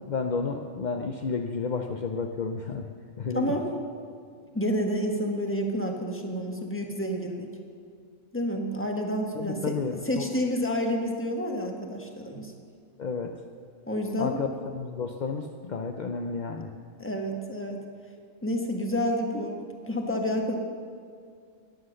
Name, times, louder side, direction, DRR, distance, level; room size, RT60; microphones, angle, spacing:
voice 1, 0.1-2.9 3.2-3.5 9.3-10.2 13.0-13.3 14.2-16.7, left 5 dB, 50° left, 4 dB, 0.5 m, -31 dB
voice 2, 3.3-3.7 4.5-7.5 8.3-9.8 10.0-12.5 13.9-14.4 17.0-17.8 18.4-20.5, equal, 10° left, 2 dB, 1.3 m, -29 dB
13.0 x 10.0 x 6.5 m, 2.2 s
omnidirectional pair, 1.5 m